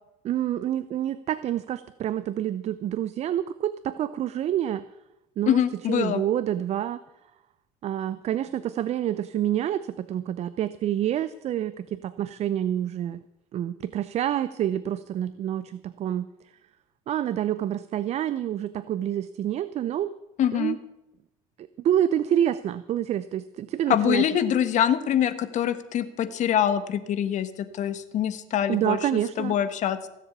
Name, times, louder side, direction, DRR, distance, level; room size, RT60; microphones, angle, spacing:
voice 1, 0.2-4.8 5.4-5.6 5.9-7.0 7.8-13.2 13.5-16.3 17.1-20.1 20.5-20.8 21.8-24.3 28.7-29.6, right 11 dB, 45° right, 15 dB, 0.6 m, -27 dB
voice 2, 5.5-6.2 20.4-20.8 23.9-29.0 29.4-30.0, left 10 dB, 50° left, 12 dB, 1.5 m, -24 dB
17.0 x 7.5 x 8.3 m, 0.90 s
supercardioid pair, 100°, 16 cm